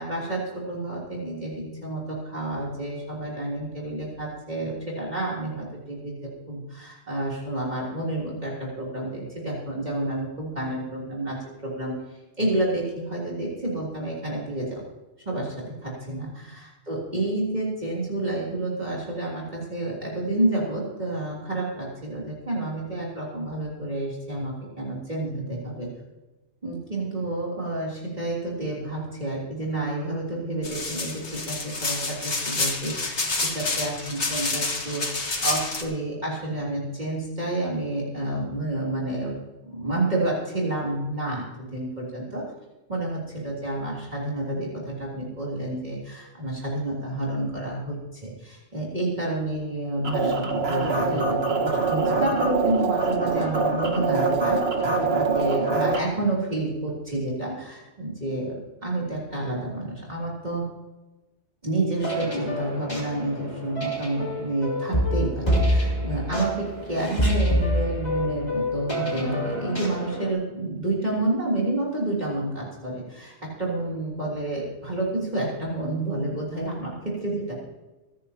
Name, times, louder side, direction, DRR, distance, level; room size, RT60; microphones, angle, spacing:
voice 1, 0.0-14.8 15.2-25.9 26.6-39.3 39.7-42.5 42.9-54.6 55.1-60.7 61.6-77.5, right 2 dB, 40° right, -4 dB, 3.5 m, -29 dB
sound 1, 30.6-35.8, left 3 dB, 80° left, 2.2 m, -28 dB
sound 2, 50.0-56.0, right 3 dB, 65° right, 1.8 m, -24 dB
sound 3, 62.0-70.3, equal, 40° left, 3.6 m, -27 dB
25.5 x 10.0 x 2.9 m, 1.1 s
omnidirectional pair, 1.2 m